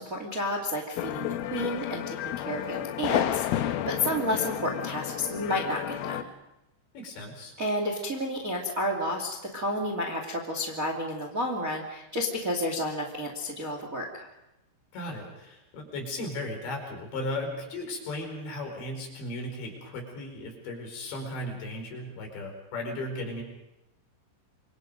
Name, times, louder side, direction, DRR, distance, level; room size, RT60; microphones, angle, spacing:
voice 1, 0.0-6.3 7.6-14.3, left 1 dB, 25° right, 3 dB, 1.8 m, -31 dB
sound 1, 1.0-6.2, left 12 dB, 80° left, 2.1 m, -31 dB
voice 2, 6.9-7.5 14.9-23.4, left 1 dB, 65° left, 2 dB, 7.0 m, -36 dB
28.0 x 24.5 x 5.3 m, 0.92 s
omnidirectional pair, 5.6 m